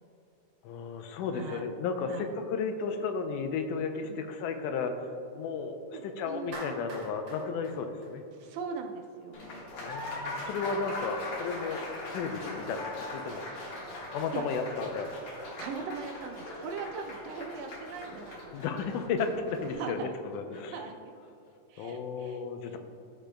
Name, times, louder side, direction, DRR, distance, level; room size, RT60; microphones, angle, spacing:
voice 1, 0.6-8.2 9.8-11.8 12.1-13.5 14.1-15.1 18.5-20.8 21.8-22.8, left 5 dB, 85° left, 6 dB, 2.1 m, -34 dB
voice 2, 1.3-1.7 2.1-2.3 4.0-4.3 5.9-6.8 8.3-9.6 13.5-13.8 14.3-14.5 15.4-18.5 19.8-20.2 20.7-21.1 21.7-22.8, right 5 dB, 85° right, 3 dB, 1.4 m, -40 dB
Clapping, 6.5-8.8, right 2 dB, 55° right, 1.7 m, -44 dB
Applause, 9.3-19.7, left 2 dB, 55° left, 2.5 m, -40 dB
15.0 x 5.1 x 2.2 m, 2.7 s
omnidirectional pair, 3.6 m